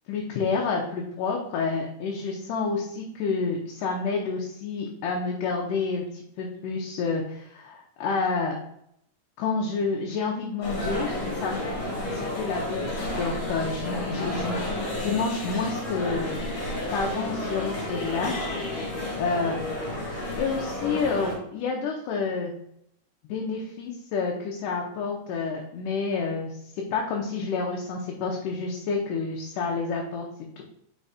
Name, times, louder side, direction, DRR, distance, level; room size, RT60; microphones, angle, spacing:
voice 1, 0.1-8.6 9.4-11.1 11.4-14.6 15.0-16.3 16.9-18.4 19.2-19.6 20.4-22.5 23.2-30.3, left 4 dB, 80° left, -1 dB, 2.4 m, -29 dB
sound 1, 10.6-21.3, left 1 dB, 50° left, 3.0 m, -31 dB
5.7 x 4.7 x 4.2 m, 0.73 s
omnidirectional pair, 3.8 m